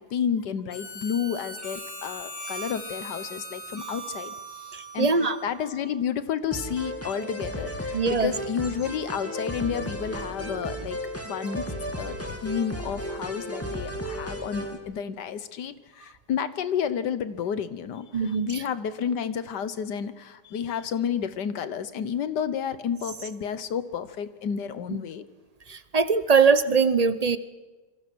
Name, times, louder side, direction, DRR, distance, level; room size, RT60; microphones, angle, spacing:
voice 1, 0.0-11.0 11.2-11.7 12.0-25.2, left 8 dB, 80° left, 13 dB, 1.7 m, -31 dB
Harmonica, 0.7-5.9, right 1 dB, 30° left, 6.2 m, -39 dB
voice 2, 4.7-5.4 7.9-8.3 18.1-18.6 25.7-27.4, right 5 dB, 40° right, 13 dB, 0.5 m, -22 dB
sound 1, 6.5-14.8, equal, 10° left, 1.9 m, -34 dB
26.5 x 23.5 x 6.2 m, 1.3 s
omnidirectional pair, 1.8 m